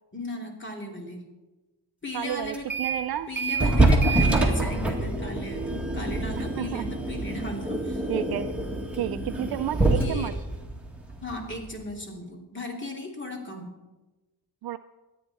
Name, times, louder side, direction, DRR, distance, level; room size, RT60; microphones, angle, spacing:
voice 1, 0.1-1.2 2.0-2.7 3.3-8.1 9.8-10.3 11.2-13.7, left 2 dB, 30° left, 1 dB, 2.8 m, -36 dB
voice 2, 2.1-3.3 6.4-6.9 8.1-8.5 9.0-10.3 14.6-14.8, right 12 dB, 65° right, 9 dB, 0.5 m, -31 dB
sound 1, 2.5-3.0 3.4-11.8, right 2 dB, 5° right, 1.9 m, -26 dB
24.5 x 9.1 x 4.2 m, 1.1 s
wide cardioid pair, 130°, 40 cm